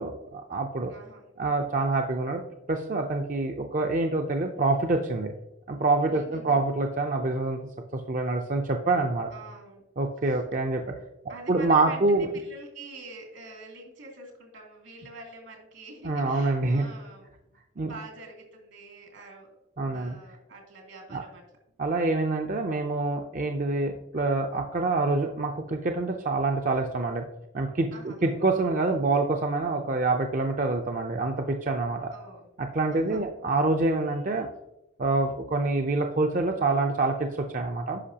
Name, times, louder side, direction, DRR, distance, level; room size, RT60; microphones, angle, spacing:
voice 1, 0.0-0.9 1.4-2.4 2.7-5.3 5.7-7.6 7.9-9.3 10.0-10.9 11.2-12.3 16.0-16.9 17.8-17.9 19.8-20.2 21.1-21.2 21.8-27.3 27.5-32.1 32.6-34.5 35.0-38.0, right 3 dB, 40° right, 3 dB, 0.5 m, -26 dB
voice 2, 0.9-1.3 6.1-6.6 9.3-9.8 10.3-10.4 11.3-17.3 17.5-19.5 19.8-21.4 27.9-28.3 32.1-32.5 32.9-33.2, right 2 dB, 80° right, 0 dB, 2.8 m, -46 dB
10.0 x 5.9 x 2.8 m, 0.89 s
head